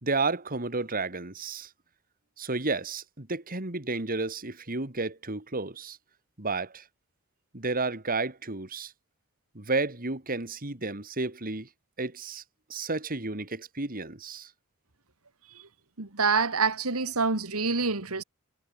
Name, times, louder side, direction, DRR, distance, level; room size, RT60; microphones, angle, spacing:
voice 1, 0.0-1.7 2.4-6.0 6.4-6.8 7.5-8.9 9.5-11.7 12.0-12.4 12.7-14.5, right 3 dB, 40° right, 2.8 m, -32 dB
voice 2, 16.0-18.2, right 4 dB, 80° right, 2.3 m, -26 dB
head